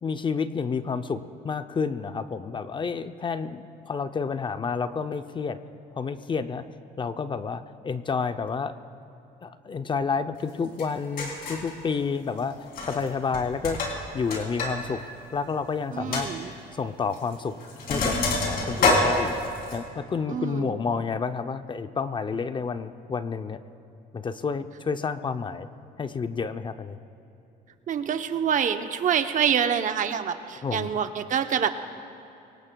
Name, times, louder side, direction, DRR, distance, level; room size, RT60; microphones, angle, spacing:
voice 1, 0.0-5.6 6.0-6.6 7.0-8.7 9.4-13.8 14.1-15.0 15.3-16.3 16.7-17.6 17.9-18.2 18.5-19.4 19.7-23.6 24.1-25.7 26.0-27.0 30.6-30.9, left 5 dB, 30° left, 10 dB, 0.5 m, -30 dB
Sink (filling or washing), 10.8-10.9 11.2-11.7 12.7-13.1 13.3-14.7 15.0-15.1 15.6-15.7 16.1-16.3 17.1-17.3 17.6-19.8, left 3 dB, 60° left, 3.2 m, -26 dB
voice 2, 15.9-16.5 20.3-20.8 27.9-31.7, right 8 dB, 50° right, 8 dB, 0.8 m, -26 dB
24.0 x 18.5 x 2.3 m, 2.8 s
cardioid pair, 110°, 17 cm